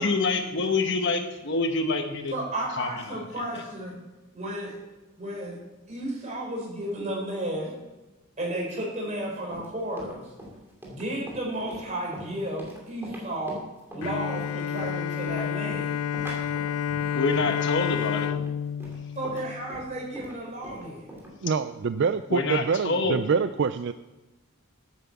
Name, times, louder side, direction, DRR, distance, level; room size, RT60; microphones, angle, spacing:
voice 1, 0.0-2.3 2.7-3.2 17.1-18.3 22.3-23.2, left 3 dB, 55° left, 6 dB, 1.1 m, -26 dB
voice 2, 2.3-3.9 4.3-4.8 5.2-5.6 5.9-7.7 8.4-10.3 10.9-13.6 13.9-15.9 19.1-21.1, right 1 dB, 30° right, -2 dB, 4.9 m, -33 dB
Run, 9.2-21.3, equal, 10° right, 2.8 m, -43 dB
Bowed string instrument, 14.0-20.2, left 8 dB, 80° left, 0.4 m, -30 dB
voice 3, 21.4-23.9, right 5 dB, 55° right, 11 dB, 0.4 m, -25 dB
9.8 x 9.2 x 7.1 m, 1.1 s
head